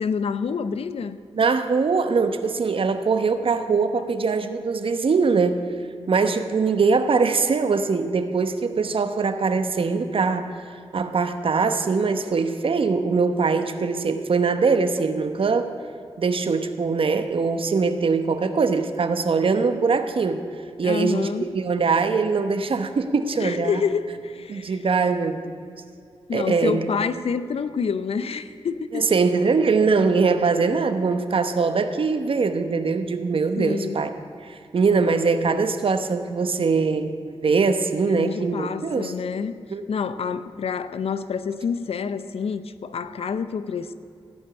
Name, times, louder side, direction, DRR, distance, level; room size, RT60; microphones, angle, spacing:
voice 1, 0.0-1.2 20.8-21.5 23.4-24.8 26.3-29.2 33.6-34.0 38.1-39.5 39.9-43.9, left 6 dB, 65° left, 13 dB, 0.6 m, -28 dB
voice 2, 1.3-5.7 6.1-15.7 16.2-20.4 20.8-23.8 24.5-25.5 26.3-26.9 28.9-34.1 34.4-39.1 39.7-39.8, right 4 dB, 55° right, 9 dB, 0.9 m, -22 dB
16.0 x 5.4 x 8.9 m, 2.5 s
cardioid pair, 65°, 11 cm